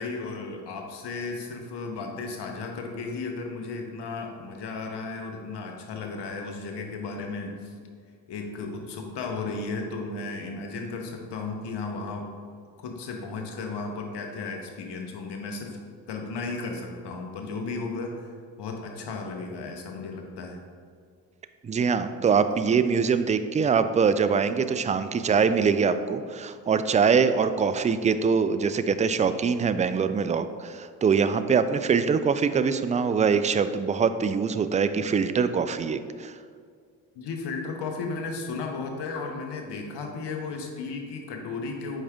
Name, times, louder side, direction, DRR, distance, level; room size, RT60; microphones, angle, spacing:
voice 1, 0.0-7.7 8.3-12.3 12.8-15.8 16.1-18.3 18.6-20.6 37.1-42.0, left 3 dB, 65° left, 3 dB, 1.2 m, -34 dB
voice 2, 21.6-36.3, right 6 dB, 20° right, 11 dB, 0.4 m, -23 dB
7.8 x 4.9 x 3.5 m, 2.1 s
hypercardioid pair, 45°, 44 cm